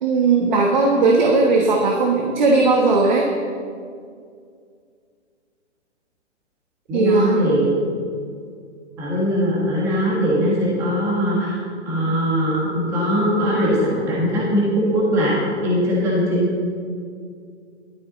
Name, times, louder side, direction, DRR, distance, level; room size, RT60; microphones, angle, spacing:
voice 1, 0.0-3.2 6.9-7.5, right 3 dB, 40° right, 0 dB, 1.3 m, -17 dB
voice 2, 6.9-7.7 9.0-11.5 11.8-15.3 15.6-16.5, equal, 10° right, -5 dB, 1.4 m, -20 dB
15.0 x 12.5 x 4.0 m, 2.2 s
hypercardioid pair, 175°, 37 cm